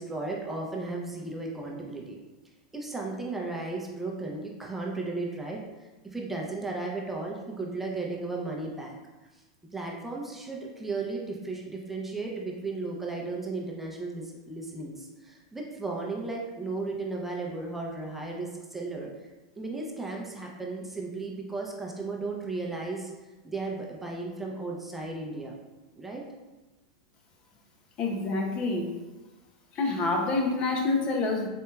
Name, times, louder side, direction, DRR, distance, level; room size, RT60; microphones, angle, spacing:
voice 1, 0.0-2.2 2.7-5.6 6.0-9.0 9.3-9.4 9.7-19.1 19.6-23.1 23.4-25.5 26.0-26.2, right 3 dB, 10° right, -2 dB, 0.6 m, -35 dB
voice 2, 28.0-29.0 29.7-31.5, left 3 dB, 40° left, 2 dB, 0.6 m, -27 dB
4.3 x 2.7 x 2.3 m, 1.1 s
hypercardioid pair, 105°, 3 cm